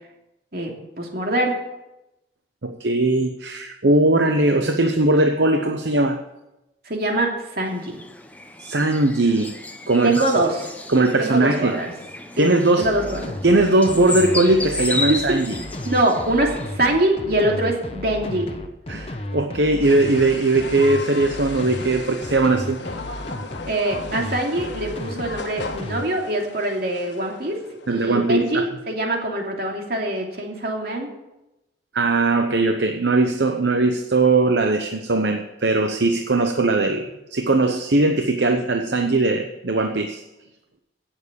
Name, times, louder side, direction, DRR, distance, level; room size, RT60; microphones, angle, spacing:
voice 1, 0.5-1.5 6.8-8.0 10.0-10.7 11.2-11.9 12.3-12.5 12.7-13.4 15.1-15.4 15.8-18.5 23.7-27.6 27.9-31.1, right 1 dB, 55° right, 1 dB, 2.8 m, -24 dB
voice 2, 2.6-6.2 8.6-9.6 9.9-10.2 10.9-11.8 12.4-12.9 13.4-15.5 18.9-22.8 27.9-28.7 31.9-40.2, right 2 dB, 70° right, 5 dB, 0.9 m, -19 dB
sound 1, 7.6-16.7, left 2 dB, 10° left, 1.0 m, -33 dB
sound 2, 12.8-26.0, left 1 dB, 30° left, 1.1 m, -33 dB
sound 3, 19.8-28.3, left 3 dB, 75° left, 1.4 m, -37 dB
16.5 x 7.3 x 7.0 m, 0.95 s
head